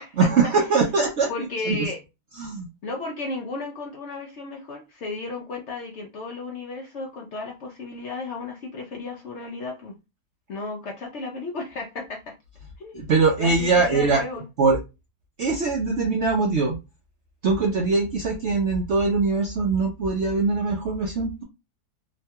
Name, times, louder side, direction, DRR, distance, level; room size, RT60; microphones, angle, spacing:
voice 1, 0.2-1.9 2.4-2.7 12.9-14.2 14.6-14.8 15.4-16.8 17.4-21.4, right 4 dB, 65° right, 0 dB, 0.6 m, -22 dB
voice 2, 1.3-2.0 2.8-10.0 10.5-12.3 12.8-13.1 13.4-14.4, left 3 dB, 60° left, 0 dB, 0.7 m, -34 dB
3.0 x 2.2 x 2.7 m, 0.26 s
omnidirectional pair, 1.7 m